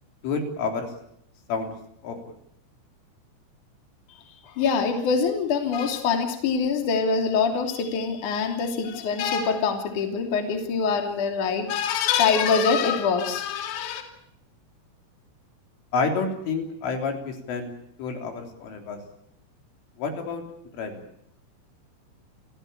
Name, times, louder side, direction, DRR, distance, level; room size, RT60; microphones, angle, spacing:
voice 1, 0.2-0.9 1.5-1.7 2.0-2.3 15.9-17.7 18.0-19.0 20.0-20.4 20.7-21.0, left 4 dB, 70° left, 4 dB, 6.0 m, -29 dB
voice 2, 4.4-14.0, left 5 dB, 45° left, 5 dB, 3.8 m, -24 dB
29.0 x 17.0 x 8.8 m, 0.72 s
omnidirectional pair, 5.9 m